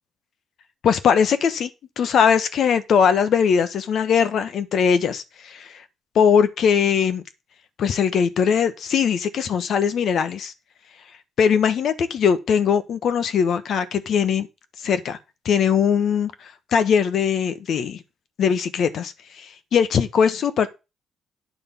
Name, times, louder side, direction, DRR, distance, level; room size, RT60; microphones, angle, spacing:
voice 1, 0.8-1.7 2.0-5.8 6.1-7.2 7.8-10.5 11.4-14.5 14.8-15.2 15.4-18.0 18.4-20.7, left 7 dB, 65° left, 1.1 m, -20 dB
9.4 x 3.9 x 6.9 m
cardioid pair, 90°, 0 cm